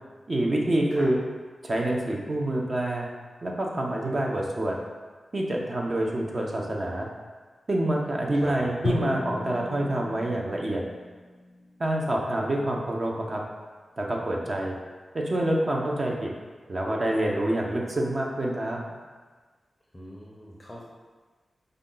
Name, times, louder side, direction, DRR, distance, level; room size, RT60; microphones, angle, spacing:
voice 1, 0.3-1.2 1.6-3.1 3.4-4.8 5.3-7.1 7.7-10.8 11.8-13.4 14.0-14.8 15.1-16.3 16.7-18.8, right 1 dB, 40° right, -1 dB, 0.6 m, -27 dB
voice 2, 8.4-8.7 19.9-20.8, equal, 15° left, -4 dB, 0.5 m, -43 dB
Drum, 8.8-12.6, left 2 dB, 90° left, 0.5 m, -35 dB
5.0 x 2.2 x 3.8 m, 1.4 s
wide cardioid pair, 90°, 0 cm